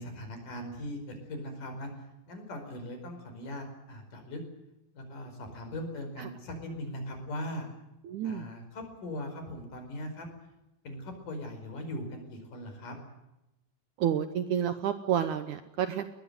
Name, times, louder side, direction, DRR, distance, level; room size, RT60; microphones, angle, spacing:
voice 1, 0.0-4.4 4.9-7.7 8.2-10.3 10.8-13.0, left 1 dB, 60° left, 6 dB, 6.4 m, -40 dB
voice 2, 8.0-8.4 14.0-16.0, right 9 dB, 70° right, 11 dB, 2.0 m, -29 dB
21.5 x 19.5 x 9.3 m, 0.94 s
omnidirectional pair, 4.3 m